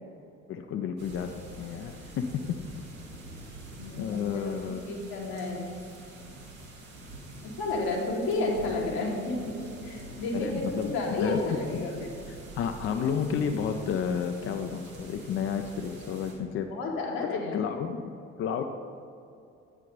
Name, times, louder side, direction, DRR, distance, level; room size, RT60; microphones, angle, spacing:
voice 1, 0.5-2.6 4.0-4.9 10.3-16.7 17.3-18.1 18.4-18.6, left 7 dB, 35° left, 6 dB, 0.4 m, -31 dB
sound 1, 1.0-16.3, right 1 dB, 80° right, 1.1 m, -46 dB
voice 2, 3.8-4.4 4.8-5.7 7.4-9.6 9.8-12.1 16.7-17.6, left 2 dB, 60° left, 0 dB, 1.2 m, -31 dB
8.3 x 3.3 x 5.0 m, 2.5 s
figure-of-eight pair, 45°, 40 cm